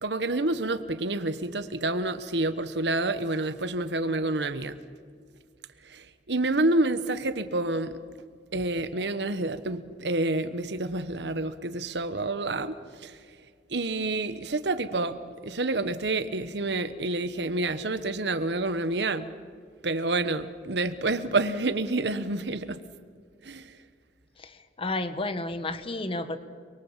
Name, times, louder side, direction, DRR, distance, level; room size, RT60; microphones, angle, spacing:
voice 1, 0.0-4.8 5.9-8.0 8.5-12.8 13.0-13.1 13.7-19.3 19.8-22.8 23.4-23.6, right 2 dB, 70° right, 11 dB, 1.2 m, -28 dB
voice 2, 24.4-26.4, left 2 dB, 30° left, 10 dB, 1.6 m, -32 dB
30.0 x 22.5 x 7.4 m, 2.1 s
head